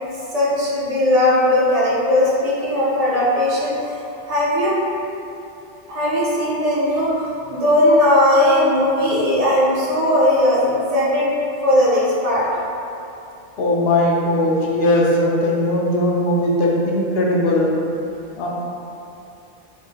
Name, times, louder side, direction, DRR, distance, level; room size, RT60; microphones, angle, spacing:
voice 1, 0.3-4.0 4.3-4.8 5.9-11.3 11.6-12.6, left 1 dB, 40° right, -7 dB, 0.6 m, -18 dB
voice 2, 13.6-17.7 18.4-18.5, left 1 dB, 65° left, -3 dB, 0.8 m, -18 dB
3.5 x 2.0 x 3.4 m, 2.8 s
omnidirectional pair, 1.2 m